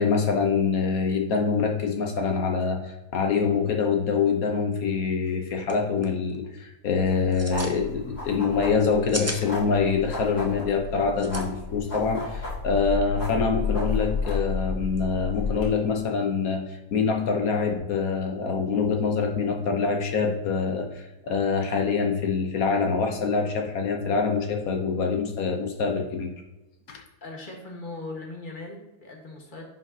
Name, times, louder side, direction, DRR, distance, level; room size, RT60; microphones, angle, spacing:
voice 1, 0.0-26.3 26.9-27.0, left 5 dB, 70° left, 3 dB, 1.3 m, -25 dB
sound 1, 5.3-5.4 5.6-5.7 6.0-6.4 7.2-7.8 8.8-9.4 11.1-11.4, right 1 dB, 15° right, 0.5 m, -34 dB
sound 2, 6.9-15.7, left 4 dB, 55° left, 2.9 m, -32 dB
voice 2, 27.2-29.7, left 2 dB, 35° left, 0 dB, 1.6 m, -39 dB
10.5 x 5.1 x 2.8 m, 1.0 s
omnidirectional pair, 1.6 m